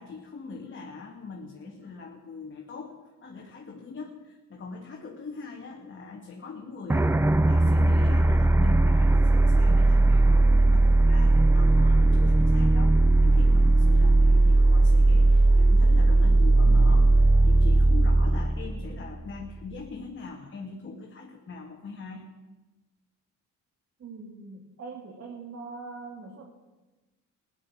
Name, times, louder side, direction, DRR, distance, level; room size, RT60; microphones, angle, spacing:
voice 1, 0.0-7.2 7.4-22.3, left 4 dB, 40° left, 0 dB, 2.1 m, -41 dB
Short Tension, 6.9-19.6, right 2 dB, 10° right, 0.4 m, -19 dB
voice 2, 24.0-26.4, right 4 dB, 50° right, 0 dB, 2.8 m, -42 dB
16.0 x 10.5 x 7.5 m, 1.1 s
cardioid pair, 90°, 30 cm